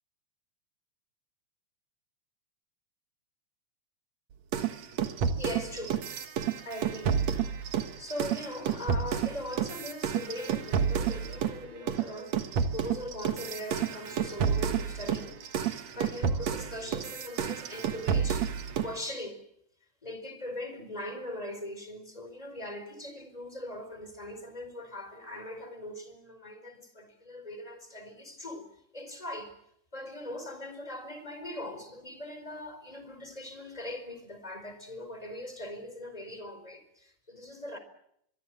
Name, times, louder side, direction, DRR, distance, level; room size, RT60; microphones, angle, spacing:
sound 1, 4.5-11.6 11.9-19.0, right 7 dB, 65° right, 2.7 m, -30 dB
voice 1, 5.4-6.1 6.6-7.3 8.0-12.4 12.7-18.5 18.8-19.4 20.0-28.7 28.9-29.6 29.9-37.8, left 1 dB, 10° left, 4.6 m, -40 dB
24.0 x 23.5 x 7.7 m
omnidirectional pair, 3.4 m